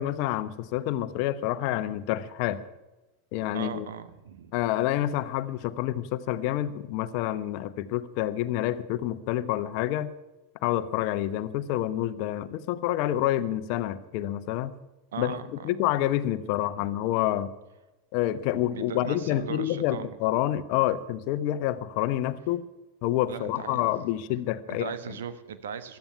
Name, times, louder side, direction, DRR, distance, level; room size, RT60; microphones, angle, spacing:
voice 1, 0.0-2.6 3.3-3.9 4.5-10.1 10.6-14.7 15.2-15.4 15.6-17.5 18.1-22.6 23.0-24.9, left 13 dB, 55° left, 13 dB, 0.9 m, -28 dB
voice 2, 3.5-4.5 15.1-15.5 16.7-16.9 18.7-20.2 23.3-24.0 24.7-26.0, right 7 dB, 70° right, 12 dB, 1.2 m, -38 dB
16.0 x 12.0 x 5.7 m, 1.1 s
figure-of-eight pair, 90°, 0 cm